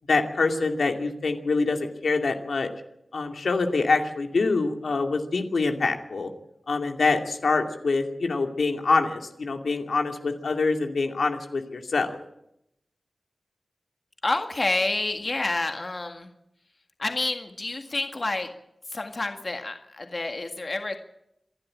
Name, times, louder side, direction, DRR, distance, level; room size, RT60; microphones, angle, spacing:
voice 1, 0.1-2.7 3.1-6.3 6.7-12.1, left 3 dB, 85° left, 4 dB, 2.4 m, -25 dB
voice 2, 14.2-16.3 17.0-18.5 18.9-21.0, left 2 dB, 40° left, 5 dB, 1.8 m, -28 dB
26.5 x 11.5 x 8.7 m, 0.81 s
wide cardioid pair, 105°, 0 cm